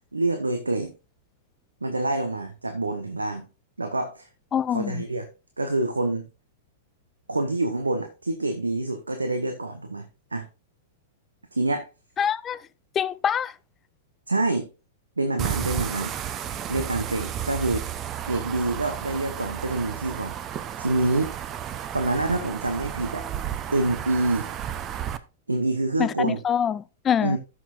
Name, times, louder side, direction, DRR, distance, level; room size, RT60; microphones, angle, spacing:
voice 1, 0.1-0.9 1.8-3.5 3.8-4.3 4.7-5.3 5.6-6.3 7.3-10.4 11.5-11.9 14.3-14.7 15.2-16.1 16.7-17.9 18.3-20.3 20.8-21.3 21.9-23.2 23.7-24.5 25.5-26.4 27.2-27.4, right 2 dB, 90° right, 0.9 m, -26 dB
voice 2, 4.5-5.0 12.2-12.6 13.0-13.5 26.0-27.4, left 8 dB, 25° left, 0.4 m, -25 dB
sound 1, 15.4-25.2, right 10 dB, 30° right, 0.7 m, -32 dB
14.0 x 6.3 x 2.5 m
figure-of-eight pair, 105°, 0 cm